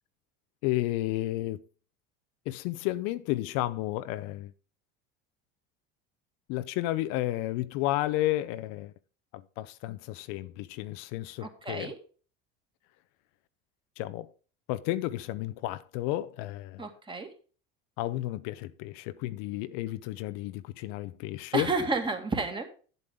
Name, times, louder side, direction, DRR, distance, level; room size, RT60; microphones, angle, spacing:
voice 1, 0.6-1.6 2.5-4.5 6.5-8.9 9.3-11.9 14.0-14.3 14.7-16.8 18.0-21.7, left 16 dB, 65° left, 0.6 m, -32 dB
voice 2, 11.4-11.9 16.8-17.3 21.5-22.7, right 3 dB, 15° right, 1.9 m, -31 dB
9.7 x 7.9 x 3.7 m
supercardioid pair, 100°, 30 cm